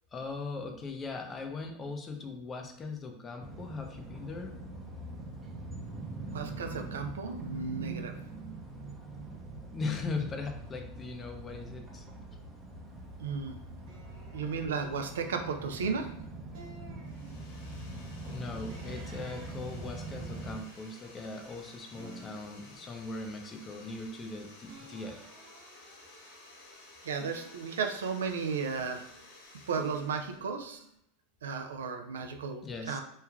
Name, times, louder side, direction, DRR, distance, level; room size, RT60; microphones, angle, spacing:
voice 1, 0.1-4.6 9.7-12.1 18.3-25.3 32.1-32.2 32.6-33.0, left 3 dB, 25° left, 4 dB, 0.5 m, -39 dB
sound 1, 3.4-20.6, right 2 dB, 20° right, 0.6 m, -43 dB
voice 2, 6.3-8.1 13.2-13.6 14.3-16.1 27.0-29.0 29.7-30.8 31.4-33.0, right 5 dB, 85° right, 5 dB, 0.3 m, -34 dB
sound 2, 13.8-16.0 16.5-17.9 18.7-21.6 22.0-24.3 24.6-26.7 27.1-29.1 29.7-30.9, right 1 dB, 65° right, 0.9 m, -55 dB
sound 3, 17.0-30.5, left 2 dB, 75° left, 0.9 m, -54 dB
3.1 x 2.3 x 2.3 m, 0.72 s
hypercardioid pair, 100°, 0 cm